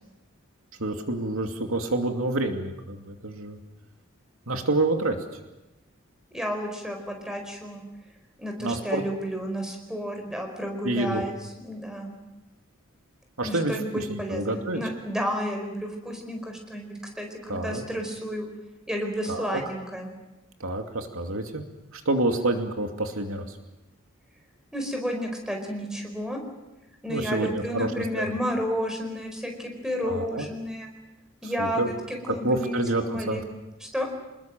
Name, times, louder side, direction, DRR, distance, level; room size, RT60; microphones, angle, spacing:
voice 1, 0.8-3.6 4.5-5.1 8.6-9.0 10.8-11.2 13.4-13.8 14.1-14.8 17.5-17.8 19.3-19.6 20.6-21.6 21.9-23.4 27.1-27.9 28.1-28.3 30.0-30.5 31.4-31.9 32.3-33.4, right 2 dB, 80° right, 4 dB, 2.7 m, -28 dB
voice 2, 6.3-7.8 8.4-11.3 11.6-12.2 13.4-18.5 18.9-20.1 24.7-26.4 27.0-30.9 31.4-33.4 33.8-34.1, equal, 5° right, 3 dB, 4.7 m, -31 dB
27.0 x 20.5 x 7.7 m, 1.0 s
head